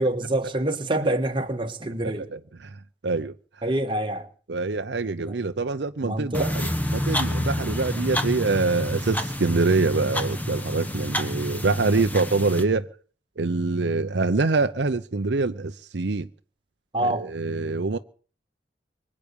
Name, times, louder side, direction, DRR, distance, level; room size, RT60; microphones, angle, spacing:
voice 1, 0.0-2.3 3.6-4.3 5.2-5.3 6.0-6.5 16.9-17.3, right 1 dB, 25° right, 1.5 m, -26 dB
voice 2, 2.2-3.3 4.5-12.9 13.4-16.3 17.0-18.0, right 3 dB, 65° right, 0.7 m, -25 dB
sound 1, 6.3-12.6, left 1 dB, 10° left, 1.4 m, -29 dB
24.0 x 8.6 x 6.8 m
head